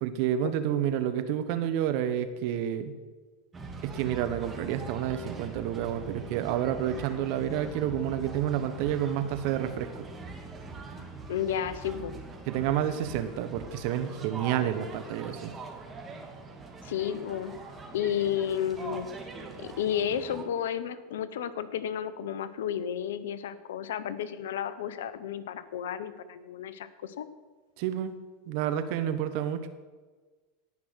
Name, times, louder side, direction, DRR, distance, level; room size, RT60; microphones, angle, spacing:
voice 1, 0.0-2.9 3.8-10.1 12.5-15.5 27.8-28.2 28.5-29.7, right 10 dB, 60° right, 10 dB, 1.2 m, -29 dB
sound 1, 3.5-20.4, right 4 dB, 25° right, 2.2 m, -42 dB
voice 2, 11.3-12.1 16.8-17.5 17.9-19.1 19.6-27.3, left 9 dB, 80° left, 14 dB, 0.9 m, -32 dB
18.0 x 6.0 x 6.4 m, 1.3 s
hypercardioid pair, 95°, 0 cm